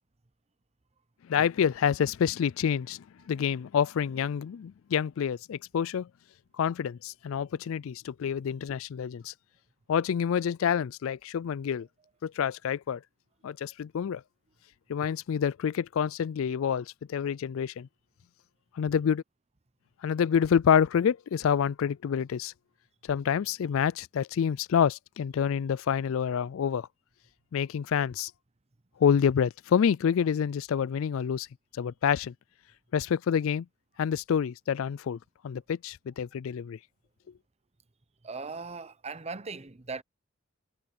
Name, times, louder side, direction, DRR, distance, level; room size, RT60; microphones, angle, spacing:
voice 1, 1.3-6.1 6.6-9.3 9.9-11.9 12.2-13.0 13.4-14.2 14.9-17.9 18.8-19.2 20.0-22.5 23.1-26.9 27.5-28.3 29.0-31.5 31.8-32.3 32.9-33.7 34.0-35.2 35.4-36.8, left 7 dB, 65° left, 0.3 m, -27 dB
voice 2, 38.2-40.0, right 4 dB, 30° right, 0.8 m, -38 dB
head